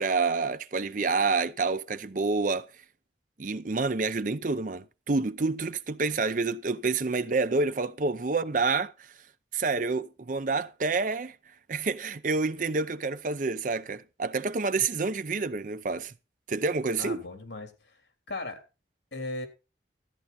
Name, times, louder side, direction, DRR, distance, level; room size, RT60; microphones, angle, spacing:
voice 1, 0.0-2.7 3.4-8.9 9.5-11.4 11.7-16.1 16.5-17.2, right 4 dB, 45° right, 0.6 m, -28 dB
voice 2, 17.0-18.0 18.3-18.6 19.1-19.5, left 2 dB, 80° left, 3.4 m, -37 dB
13.5 x 9.4 x 4.2 m
head